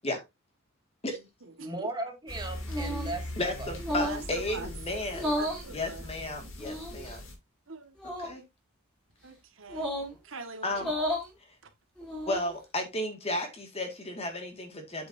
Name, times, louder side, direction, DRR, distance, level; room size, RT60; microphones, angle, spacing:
voice 1, 1.6-3.7, right 2 dB, 20° right, 2.1 m, -37 dB
sound 1, 2.3-7.3, left 1 dB, 60° left, 2.8 m, -40 dB
sound 2, 2.7-3.2 3.8-4.3 5.1-5.7 6.6-7.1 8.0-8.3 9.7-10.1 10.7-11.3 12.0-12.5, equal, 5° left, 4.1 m, -33 dB
voice 2, 3.4-5.3 5.7-7.2 8.2-8.4 10.6-10.9 12.2-15.1, left 1 dB, 30° left, 2.0 m, -33 dB
voice 3, 4.0-4.7 5.2-6.1 7.7-8.0 9.2-9.9 10.2-10.7, right 3 dB, 65° right, 1.7 m, -42 dB
8.2 x 8.2 x 2.7 m
head